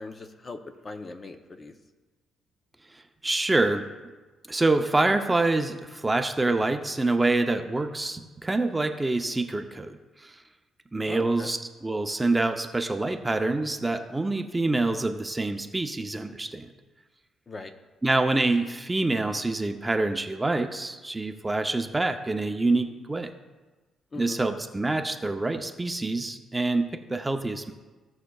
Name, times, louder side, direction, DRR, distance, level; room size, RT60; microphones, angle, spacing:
voice 1, 0.0-1.7 11.1-11.5 17.5-17.7 24.1-24.4, left 3 dB, 35° left, 7 dB, 0.7 m, -40 dB
voice 2, 2.9-3.9 4.5-10.4 10.9-16.7 18.0-23.3 24.2-27.7, right 2 dB, 15° right, 6 dB, 0.6 m, -26 dB
16.0 x 6.4 x 2.3 m, 1.2 s
cardioid pair, 90°, 0 cm